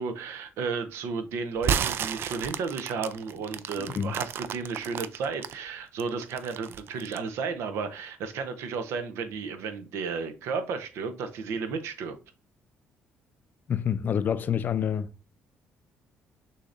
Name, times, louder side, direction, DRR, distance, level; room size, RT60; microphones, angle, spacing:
voice 1, 0.0-12.2, right 5 dB, 80° right, 0.8 m, -33 dB
sound 1, 1.6-5.5 6.0-7.3, right 8 dB, 55° right, 0.3 m, -31 dB
voice 2, 13.7-15.1, left 8 dB, 40° left, 0.4 m, -27 dB
6.3 x 2.9 x 2.5 m
cardioid pair, 120°, 5 cm